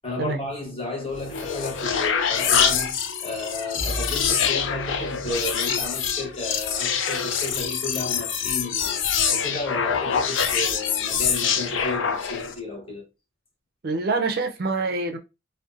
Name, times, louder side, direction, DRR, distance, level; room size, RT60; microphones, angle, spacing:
voice 1, 0.0-13.1, left 2 dB, 30° left, 1.0 m, -33 dB
sound 1, 1.1-12.6, left 7 dB, 80° left, 0.4 m, -25 dB
Bowed string instrument, 3.8-6.8, equal, 10° right, 0.6 m, -38 dB
voice 2, 13.8-15.2, right 3 dB, 55° right, 0.4 m, -25 dB
2.5 x 2.1 x 2.4 m
head